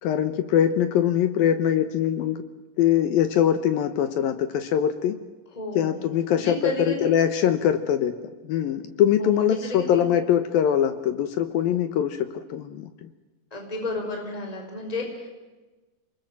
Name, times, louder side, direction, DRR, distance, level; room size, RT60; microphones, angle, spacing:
voice 1, 0.0-2.4 2.8-5.2 5.8-8.2 8.4-13.1, left 9 dB, 75° left, 10 dB, 2.2 m, -23 dB
voice 2, 5.6-6.0 6.3-7.1 9.2-10.0 13.5-15.3, left 2 dB, 10° left, 2 dB, 4.5 m, -32 dB
28.5 x 20.5 x 7.5 m, 1.2 s
omnidirectional pair, 5.5 m